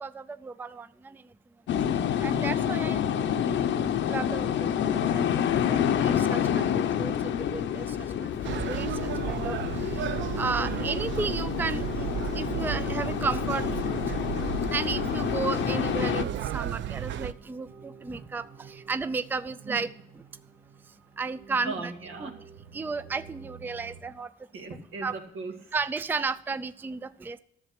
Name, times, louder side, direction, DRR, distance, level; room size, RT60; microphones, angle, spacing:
voice 1, 0.0-1.2 2.2-3.5 4.1-8.4 8.7-9.6 9.8-10.0 10.4-11.8 12.3-13.6 14.7-19.9 21.2-21.9 22.2-22.3 22.7-24.3 25.0-25.2 25.7-27.4, right 4 dB, 10° right, 14 dB, 0.4 m, -33 dB
sound 1, 1.7-16.2, left 9 dB, 70° left, 0.7 m, -28 dB
sound 2, 8.4-17.3, right 10 dB, 70° right, 0.6 m, -34 dB
sound 3, 10.3-24.0, right 5 dB, 50° right, 1.7 m, -49 dB
voice 2, 21.6-22.3 24.5-25.8, right 3 dB, 85° right, 3 dB, 2.1 m, -38 dB
11.0 x 7.0 x 5.9 m, 0.69 s
cardioid pair, 90°, 20 cm